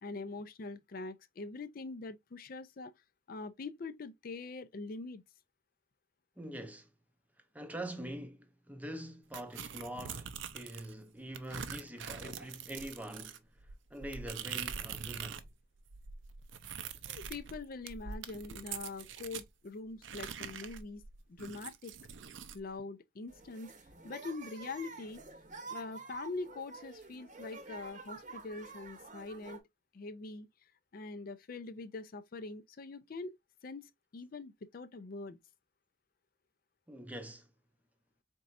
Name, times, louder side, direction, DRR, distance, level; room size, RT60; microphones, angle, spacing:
voice 1, 0.0-2.9 3.3-5.2 17.1-21.0 21.3-21.9 22.5-23.7 24.0-25.2 25.7-29.6 29.9-33.4 33.6-35.4, left 3 dB, 50° left, 0.4 m, -43 dB
voice 2, 6.4-6.9 7.5-15.5 36.9-37.5, right 1 dB, 10° right, 0.6 m, -44 dB
sound 1, 9.3-10.9 11.3-15.5 15.8-19.5 20.0-22.6, right 7 dB, 80° right, 0.6 m, -44 dB
sound 2, 23.3-29.6, right 4 dB, 40° right, 0.8 m, -49 dB
4.4 x 4.1 x 2.4 m
head